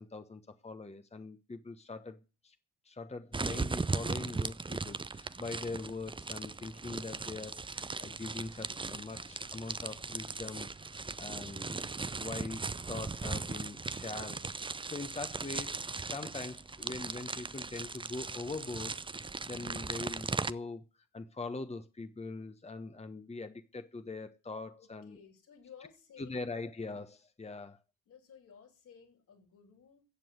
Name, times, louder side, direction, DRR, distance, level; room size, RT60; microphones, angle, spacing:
voice 1, 0.0-2.5 2.8-20.8 21.1-25.2 26.2-27.8, left 3 dB, 20° left, 1.2 m, -42 dB
sound 1, 3.3-20.5, right 3 dB, 15° right, 0.6 m, -38 dB
voice 2, 24.8-26.4 28.1-30.0, left 7 dB, 75° left, 6.6 m, -56 dB
15.5 x 7.6 x 8.0 m
supercardioid pair, 50°, 31 cm